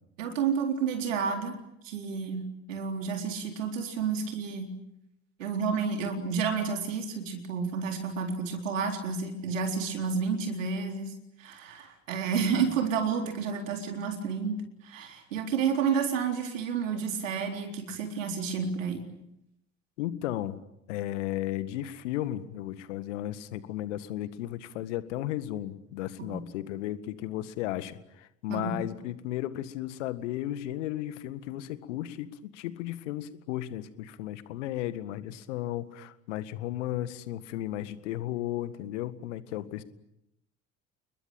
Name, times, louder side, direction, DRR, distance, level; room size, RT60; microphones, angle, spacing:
voice 1, 0.2-1.5 1.8-4.7 5.4-11.1 11.4-14.5 14.8-19.0 26.2-26.4 28.5-28.8, right 6 dB, 70° right, 4 dB, 4.0 m, -30 dB
voice 2, 20.0-20.6 20.9-39.8, left 13 dB, 65° left, 14 dB, 1.9 m, -34 dB
30.0 x 21.5 x 8.9 m, 0.83 s
figure-of-eight pair, 65°, 40 cm